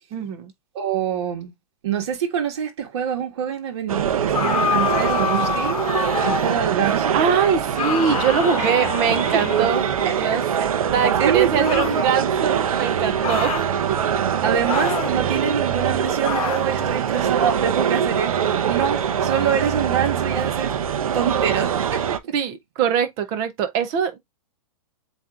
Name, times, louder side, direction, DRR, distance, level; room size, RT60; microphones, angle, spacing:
voice 1, 0.1-0.5 7.1-10.4 10.9-13.5 22.3-24.2, right 7 dB, 15° right, 0.4 m, -22 dB
voice 2, 0.7-1.5 1.8-5.8 6.2-7.2 8.6-8.7 9.1-9.4 10.1-10.7 11.2-12.3 14.4-20.8 21.1-22.2, right 8 dB, 50° right, 1.8 m, -25 dB
sound 1, 3.9-22.2, right 8 dB, 80° right, 0.8 m, -23 dB
sound 2, 4.3-6.6 7.7-10.0 11.6-12.0 13.2-13.7 14.7-15.2 16.2-16.7, left 8 dB, 85° left, 0.9 m, -26 dB
7.7 x 2.8 x 2.4 m
hypercardioid pair, 175°, 18 cm